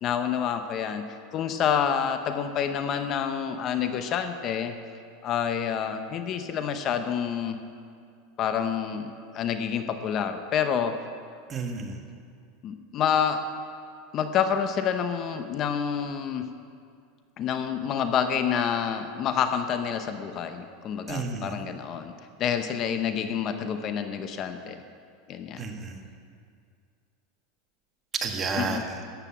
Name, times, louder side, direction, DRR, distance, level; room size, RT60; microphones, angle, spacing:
voice 1, 0.0-4.8 5.2-7.6 8.4-11.0 12.6-13.4 14.1-16.5 17.4-24.8 25.3-25.6 28.6-28.9, left 8 dB, 40° left, 8 dB, 0.9 m, -28 dB
voice 2, 11.5-11.9 21.1-21.5 25.6-26.0 28.2-29.0, right 4 dB, 25° right, 3 dB, 1.7 m, -31 dB
14.0 x 8.2 x 8.6 m, 2.3 s
supercardioid pair, 130°, 0 cm